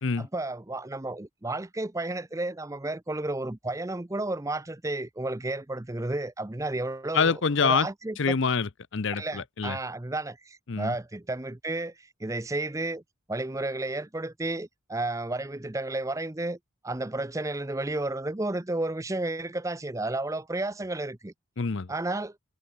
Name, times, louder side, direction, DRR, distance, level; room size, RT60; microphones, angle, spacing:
voice 1, 0.2-7.3 7.6-8.4 9.2-11.9 12.2-13.0 13.3-16.6 16.8-21.3 21.9-22.3, right 2 dB, 15° right, 0.6 m, -32 dB
voice 2, 7.1-7.9 8.2-9.8 10.7-10.9 21.6-21.9, left 5 dB, 60° left, 0.7 m, -26 dB
head